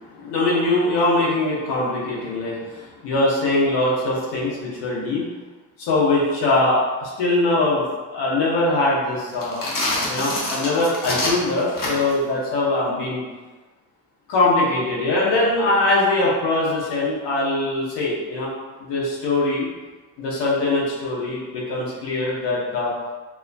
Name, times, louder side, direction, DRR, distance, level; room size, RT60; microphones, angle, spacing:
voice 1, 0.2-5.3 5.8-7.8 8.1-9.6 10.1-13.2 14.3-18.5 18.9-19.7 20.2-22.9, left 2 dB, 85° left, -6 dB, 1.1 m, -22 dB
sound 1, 9.3-12.2, left 1 dB, 50° left, 1.1 m, -26 dB
4.7 x 2.5 x 2.3 m, 1.3 s
supercardioid pair, 55°, 41 cm